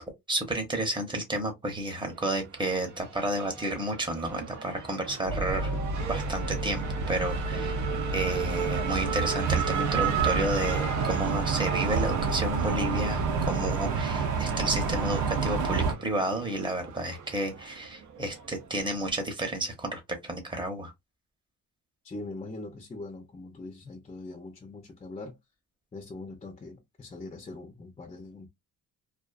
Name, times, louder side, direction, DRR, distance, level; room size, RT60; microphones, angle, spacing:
voice 1, 0.3-7.8 8.1-20.9, right 1 dB, 15° right, 0.9 m, -31 dB
Race car auto racing / Accelerating revving vroom, 2.1-19.1, right 6 dB, 55° right, 0.6 m, -35 dB
sound 1, 5.3-15.9, right 4 dB, 85° right, 0.8 m, -29 dB
voice 2, 22.0-25.4 25.9-28.5, left 2 dB, 20° left, 0.6 m, -42 dB
2.4 x 2.4 x 2.4 m
cardioid pair, 120°, 36 cm